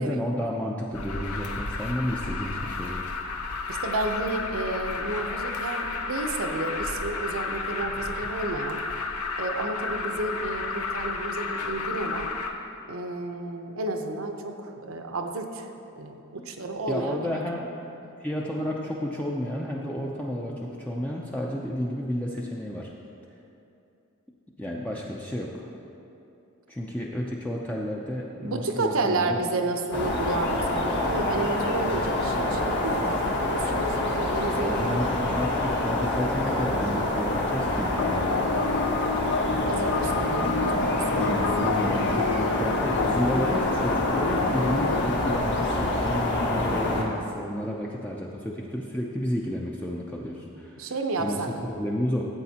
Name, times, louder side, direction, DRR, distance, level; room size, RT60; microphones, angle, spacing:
voice 1, 0.0-3.0 16.4-16.5 16.9-17.6 18.2-22.9 24.6-25.7 26.7-29.4 34.5-38.4 41.1-50.9 51.2-51.4 51.8-52.3, equal, 5° left, -3 dB, 0.4 m, -31 dB
Alarm, 0.9-12.5, left 4 dB, 85° left, 0.7 m, -32 dB
voice 2, 3.7-8.8 9.4-12.3 12.9-15.7 16.0-17.3 28.4-35.0 39.6-41.4 50.8-51.5, right 2 dB, 70° right, 5 dB, 0.7 m, -31 dB
sound 1, 29.9-47.0, left 1 dB, 55° left, 1.3 m, -26 dB
sound 2, 38.0-45.4, left 5 dB, 70° left, 0.3 m, -30 dB
13.5 x 8.2 x 2.8 m, 2.7 s
head